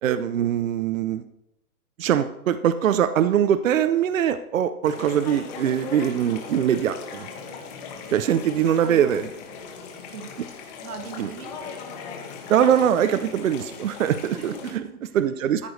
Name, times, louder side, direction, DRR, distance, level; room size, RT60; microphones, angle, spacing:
voice 1, 0.0-1.2 2.0-7.3 8.1-9.3 11.2-11.3 12.5-14.5 15.1-15.7, right 9 dB, 60° right, 11 dB, 0.8 m, -22 dB
sound 1, 4.8-14.7, left 5 dB, 30° left, 1.9 m, -38 dB
voice 2, 8.8-9.2 10.1-10.3 10.8-11.6 14.3-15.2 15.6-15.7, right 6 dB, 80° right, 5 dB, 2.1 m, -39 dB
14.0 x 10.5 x 3.3 m, 0.83 s
hypercardioid pair, 160°, 45 cm